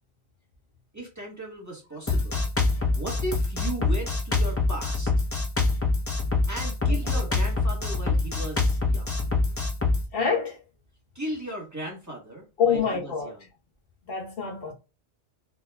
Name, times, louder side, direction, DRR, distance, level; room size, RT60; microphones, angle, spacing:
voice 1, 0.9-2.4 2.9-5.3 6.5-9.1 11.1-13.4, right 1 dB, 15° right, 1.3 m, -36 dB
Drum kit, 2.1-10.0, left 3 dB, 20° left, 0.4 m, -25 dB
voice 2, 10.1-10.6 12.6-13.4 14.1-14.7, left 6 dB, 55° left, 1.2 m, -26 dB
4.3 x 2.7 x 2.2 m
omnidirectional pair, 1.2 m